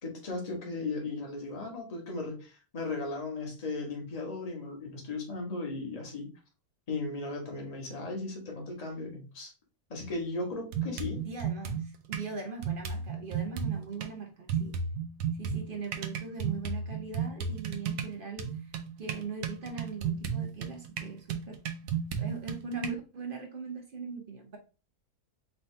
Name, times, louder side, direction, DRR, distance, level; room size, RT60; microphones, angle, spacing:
voice 1, 0.0-6.3 6.9-9.5 9.9-11.2, left 3 dB, 25° left, 0 dB, 1.1 m, -36 dB
sound 1, 10.0-10.1 10.7-12.3 12.6-14.1 14.5-22.9, right 6 dB, 80° right, 1.1 m, -34 dB
voice 2, 11.2-14.8 15.3-18.7 19.0-21.6 22.2-24.6, right 4 dB, 65° right, 4 dB, 0.5 m, -40 dB
4.4 x 2.8 x 3.2 m, 0.33 s
omnidirectional pair, 1.7 m